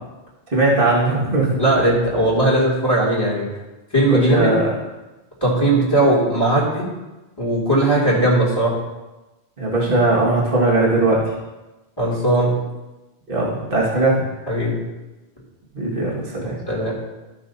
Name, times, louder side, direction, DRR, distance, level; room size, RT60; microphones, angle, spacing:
voice 1, 0.5-1.6 4.1-4.7 9.6-11.3 13.3-14.2 15.7-16.6, right 2 dB, 50° right, -5 dB, 2.0 m, -19 dB
voice 2, 1.6-3.5 3.9-4.5 5.4-6.9 7.4-8.7 12.0-12.5 14.5-14.8 16.4-16.9, right 1 dB, 20° left, -6 dB, 2.9 m, -18 dB
14.5 x 6.4 x 2.7 m, 1.1 s
omnidirectional pair, 1.2 m